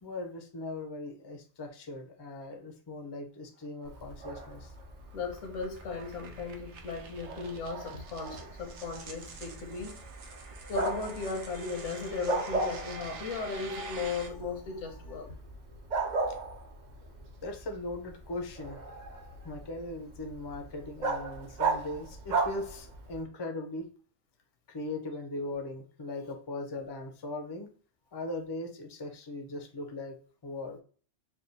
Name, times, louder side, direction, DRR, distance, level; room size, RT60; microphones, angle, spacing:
voice 1, 0.0-4.7 17.4-18.8 19.4-23.8 24.7-27.7 28.1-30.2 30.4-30.8, left 2 dB, 35° left, 0.4 m, -39 dB
sound 1, 3.6-14.3, right 4 dB, 70° right, 1.0 m, -48 dB
Bark, 3.8-23.2, right 3 dB, 50° right, 0.6 m, -37 dB
voice 2, 5.1-10.0 10.7-15.4, left 4 dB, 75° left, 1.2 m, -36 dB
3.5 x 2.2 x 4.0 m
omnidirectional pair, 1.2 m